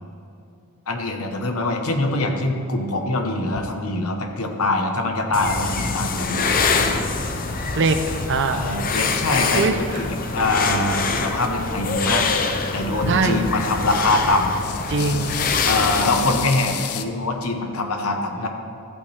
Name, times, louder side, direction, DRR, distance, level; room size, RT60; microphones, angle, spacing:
voice 1, 0.9-7.0 8.5-12.3 12.7-14.6 15.6-18.5, left 2 dB, 75° left, 4 dB, 1.2 m, -24 dB
sound 1, 3.5-7.2 7.5-8.6 8.8-8.9 9.3-10.7 11.1-12.3 12.7-13.7 14.0-17.0, left 8 dB, 90° left, 0.6 m, -34 dB
sound 2, 5.3-16.5, left 4 dB, 40° left, 0.7 m, -25 dB
voice 2, 7.8-8.6 9.5-9.8 13.1-13.5 14.9-15.6, right 3 dB, 60° right, 7 dB, 0.7 m, -22 dB
14.5 x 8.6 x 3.4 m, 2.8 s
head